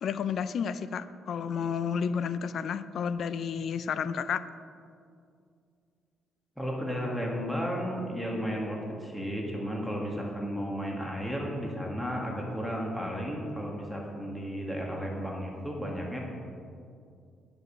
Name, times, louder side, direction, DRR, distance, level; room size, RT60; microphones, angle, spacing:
voice 1, 0.0-4.4, left 6 dB, 65° left, 14 dB, 0.4 m, -31 dB
voice 2, 6.6-16.3, equal, 5° left, -2 dB, 1.8 m, -33 dB
9.5 x 5.3 x 6.4 m, 2.4 s
cardioid pair, 90°, 0 cm